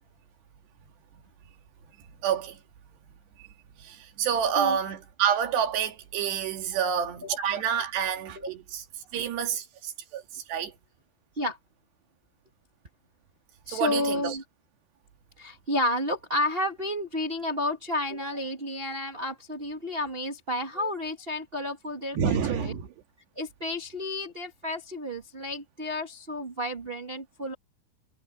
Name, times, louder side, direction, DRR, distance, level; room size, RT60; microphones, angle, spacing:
voice 1, 2.2-2.6 3.8-8.8 9.1-10.7 13.7-14.4 22.2-22.9, right 8 dB, 75° right, 4.3 m, -28 dB
voice 2, 13.6-14.4 15.4-22.7 23.3-27.5, left 1 dB, 30° right, 1.0 m, -31 dB
omnidirectional pair, 4.9 m